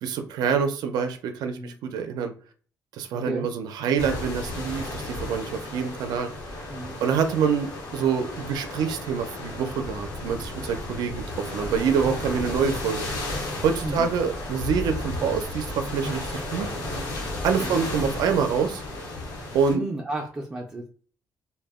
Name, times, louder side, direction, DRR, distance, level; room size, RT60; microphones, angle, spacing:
voice 1, 0.0-2.3 2.9-6.3 7.0-13.1 13.6-16.7 17.4-18.8 19.5-19.8, right 6 dB, 85° right, 0.4 m, -26 dB
voice 2, 3.1-3.5 6.7-7.0 13.8-14.1 17.6-17.7 19.7-20.9, right 1 dB, 15° right, 0.4 m, -33 dB
sound 1, 4.0-19.8, left 2 dB, 85° left, 0.9 m, -33 dB
2.1 x 2.0 x 3.5 m
cardioid pair, 160°, 7 cm